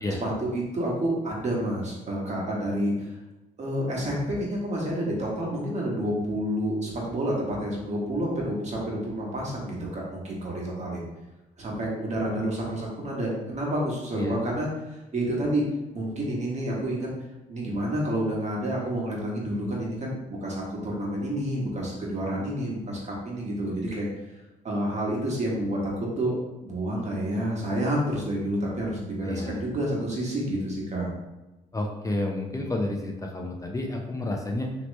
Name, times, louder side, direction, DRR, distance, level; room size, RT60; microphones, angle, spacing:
voice 1, 0.2-3.2 3.6-11.0 11.6-15.6 15.9-17.1 17.5-24.1 24.6-26.3 26.6-31.1, right 1 dB, 45° right, -3 dB, 1.4 m, -29 dB
voice 2, 29.2-29.6 31.7-34.8, left 2 dB, 20° left, 1 dB, 0.6 m, -30 dB
3.0 x 2.9 x 3.1 m, 1.1 s
supercardioid pair, 60°, 16 cm